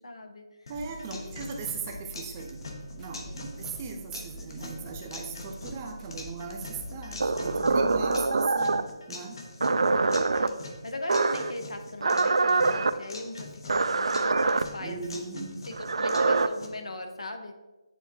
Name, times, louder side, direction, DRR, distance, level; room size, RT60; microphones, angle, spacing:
voice 1, 0.0-0.7 1.1-1.5 3.2-3.5 4.7-4.9 10.3-15.1 15.6-17.5, left 2 dB, 80° left, 5 dB, 0.9 m, -40 dB
sound 1, 0.7-16.7, left 2 dB, 55° left, 1.0 m, -44 dB
sound 2, 0.7-8.3, equal, 10° left, 0.7 m, -45 dB
voice 2, 0.7-2.6 2.9-9.4 14.8-15.6, right 4 dB, 25° right, 2 dB, 0.7 m, -38 dB
sound 3, 7.2-8.9 9.6-10.5 11.1-11.5 12.0-12.9 13.7-14.6 15.7-16.5, right 3 dB, 80° right, 0.4 m, -24 dB
9.6 x 3.7 x 2.8 m, 1.2 s
figure-of-eight pair, 160°, 3 cm